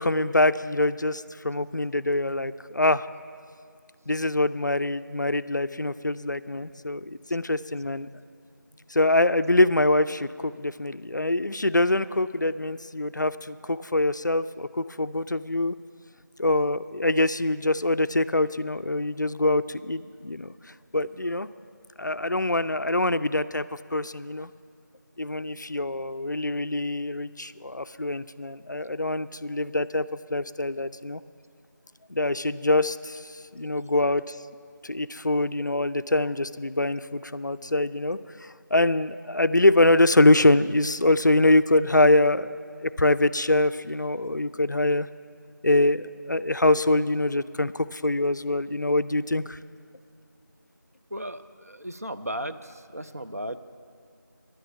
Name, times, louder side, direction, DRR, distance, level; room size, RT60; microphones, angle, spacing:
voice 1, 0.0-3.1 4.1-8.1 8.9-15.7 16.4-20.5 20.9-21.5 22.0-23.6 23.9-24.5 25.2-31.2 32.1-34.4 34.8-45.1 45.6-49.6, left 2 dB, 65° left, 14 dB, 0.4 m, -24 dB
voice 2, 51.1-53.6, equal, 50° right, 9 dB, 0.5 m, -36 dB
11.0 x 9.2 x 8.4 m, 2.2 s
figure-of-eight pair, 175°, 11 cm